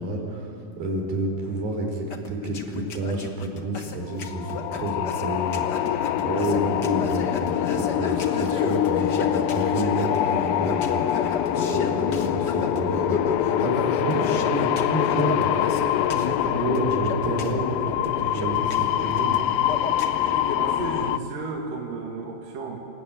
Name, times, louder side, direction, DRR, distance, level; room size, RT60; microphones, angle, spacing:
voice 1, 0.0-15.8 16.0-19.4, right 1 dB, 90° right, 1 dB, 5.8 m, -29 dB
sound 1, 2.1-20.6, left 4 dB, 50° left, 1.3 m, -34 dB
sound 2, 4.1-21.2, left 11 dB, 80° left, 2.5 m, -25 dB
voice 2, 20.5-22.8, right 4 dB, 70° right, -1 dB, 3.6 m, -33 dB
28.5 x 18.0 x 8.8 m, 2.6 s
omnidirectional pair, 4.1 m